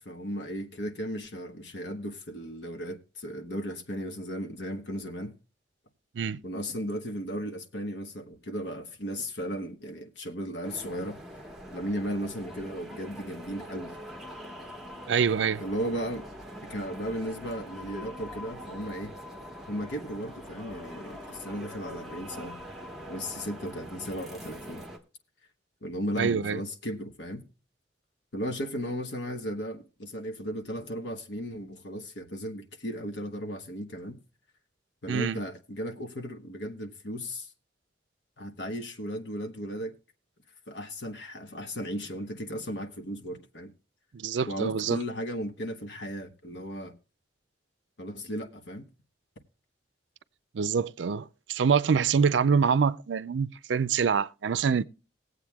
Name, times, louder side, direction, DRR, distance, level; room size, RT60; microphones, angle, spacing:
voice 1, 0.0-5.4 6.4-11.4 11.7-13.9 15.6-16.3 16.6-19.1 19.7-22.6 23.1-24.8 25.8-27.5 28.3-34.2 35.0-37.5 38.4-40.0 40.7-43.7 44.5-46.9 48.0-48.9, equal, 70° left, 1.2 m, -35 dB
sound 1, 10.6-25.0, equal, ahead, 1.3 m, -43 dB
voice 2, 15.1-15.6 26.2-26.6 35.1-35.4 44.1-45.0 50.5-54.8, right 6 dB, 85° right, 0.5 m, -25 dB
20.0 x 8.0 x 2.3 m
head